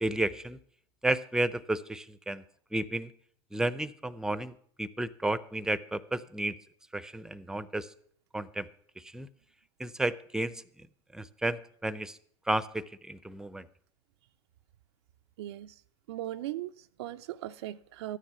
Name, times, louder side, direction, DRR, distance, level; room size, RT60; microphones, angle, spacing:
voice 1, 0.0-0.6 1.0-2.4 2.7-3.1 3.5-6.6 6.9-7.9 8.3-8.7 9.1-9.3 9.8-10.6 11.1-12.2 12.5-13.7, right 1 dB, 5° right, 0.6 m, -32 dB
voice 2, 15.4-15.8 16.1-18.2, right 14 dB, 70° right, 0.4 m, -38 dB
13.0 x 10.0 x 5.8 m
hypercardioid pair, 95°, 14 cm